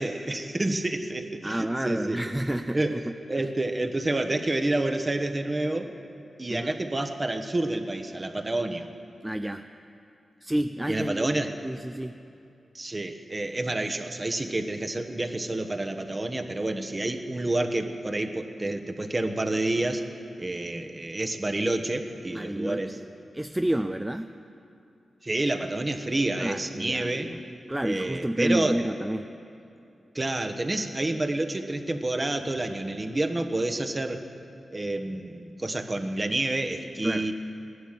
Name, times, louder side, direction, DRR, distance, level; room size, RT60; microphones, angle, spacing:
voice 1, 0.0-2.2 2.7-3.0 3.3-5.9 6.4-8.9 10.9-11.5 12.7-20.0 20.4-23.0 25.2-27.3 27.8-28.8 30.1-34.2 34.7-37.3, right 2 dB, 30° right, 5 dB, 1.2 m, -29 dB
voice 2, 1.4-3.5 6.5-6.8 9.2-9.6 10.4-11.4 11.6-12.2 22.3-23.0 23.3-24.3 26.4-27.4 27.7-29.3 37.0-37.3, right 1 dB, 10° right, 8 dB, 0.5 m, -30 dB
16.0 x 11.0 x 7.5 m, 2.6 s
cardioid pair, 80°, 0 cm